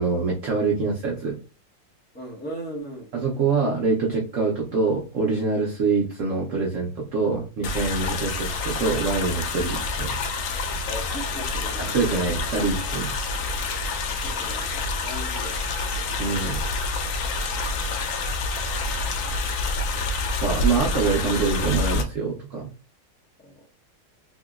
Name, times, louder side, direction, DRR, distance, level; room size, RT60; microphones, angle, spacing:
voice 1, 0.0-1.4 3.1-10.2 11.8-13.1 16.2-16.6 20.4-22.7, right 4 dB, 60° right, -2 dB, 0.9 m, -25 dB
voice 2, 2.1-3.1 10.9-12.0 14.2-15.6 15.9-16.4 18.8-19.4 23.4-23.5, right 1 dB, 10° left, -3 dB, 0.5 m, -38 dB
sound 1, 7.6-22.0, left 3 dB, 80° left, 0.7 m, -27 dB
3.5 x 2.9 x 2.3 m, 0.34 s
omnidirectional pair, 2.0 m